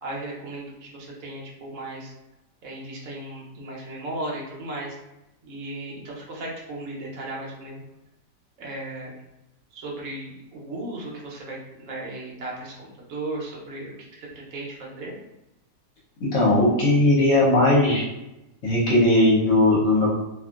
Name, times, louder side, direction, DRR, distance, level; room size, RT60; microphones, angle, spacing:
voice 1, 0.0-2.1 2.6-5.0 5.4-7.8 8.6-9.1 9.7-15.2, right 2 dB, 60° right, -3 dB, 1.0 m, -36 dB
voice 2, 16.2-18.0 18.6-20.1, left 1 dB, 60° left, -5 dB, 1.2 m, -18 dB
2.8 x 2.4 x 2.3 m, 0.93 s
omnidirectional pair, 1.8 m